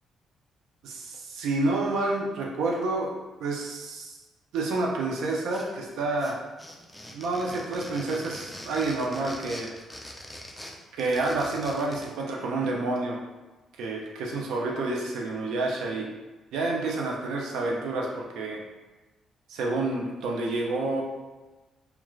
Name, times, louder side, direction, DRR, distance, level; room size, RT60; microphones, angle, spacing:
voice 1, 0.8-3.1 3.4-4.2 4.5-6.4 7.1-9.7 10.9-13.2 13.8-16.1 16.5-18.6 19.5-21.0, right 2 dB, 85° right, -1 dB, 0.5 m, -29 dB
sound 1, 5.3-5.9 6.2-12.2, left 1 dB, 5° left, 0.4 m, -43 dB
2.3 x 2.3 x 3.0 m, 1.2 s
cardioid pair, 90°, 0 cm